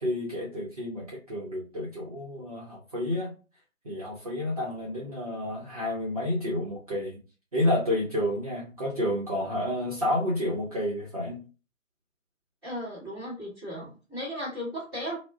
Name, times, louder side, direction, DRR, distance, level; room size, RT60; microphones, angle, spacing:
voice 1, 0.0-3.3 3.8-7.2 7.5-11.4, left 1 dB, 30° right, -5 dB, 0.7 m, -30 dB
voice 2, 12.6-15.2, equal, ahead, -14 dB, 0.9 m, -36 dB
2.3 x 2.0 x 3.4 m, 0.33 s
figure-of-eight pair, 145°, 40 cm